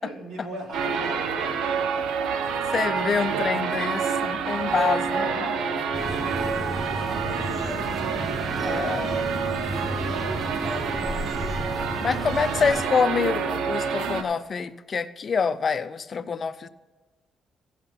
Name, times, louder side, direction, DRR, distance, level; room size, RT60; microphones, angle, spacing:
voice 1, 0.0-3.9 5.0-9.5 10.0-12.8, right 1 dB, 70° right, -2 dB, 3.3 m, -40 dB
sound 1, 0.7-14.2, right 6 dB, 85° right, 0.9 m, -28 dB
voice 2, 2.7-5.3 8.6-9.3 12.0-16.7, left 6 dB, 45° left, 13 dB, 0.5 m, -26 dB
sound 2, 5.9-12.8, right 1 dB, 15° right, 1.1 m, -33 dB
15.5 x 5.8 x 5.7 m, 1.3 s
cardioid pair, 90°, 0 cm